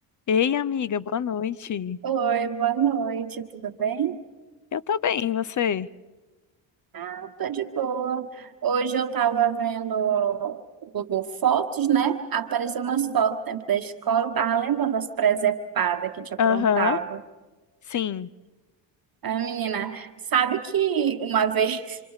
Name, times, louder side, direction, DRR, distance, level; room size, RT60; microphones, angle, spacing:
voice 1, 0.3-2.0 4.7-5.9 16.4-17.0 17.9-18.3, left 8 dB, 40° left, 18 dB, 0.7 m, -25 dB
voice 2, 2.0-4.2 6.9-17.2 19.2-22.0, right 8 dB, 45° right, 7 dB, 1.2 m, -25 dB
27.0 x 25.5 x 4.8 m, 1.2 s
supercardioid pair, 55°, 49 cm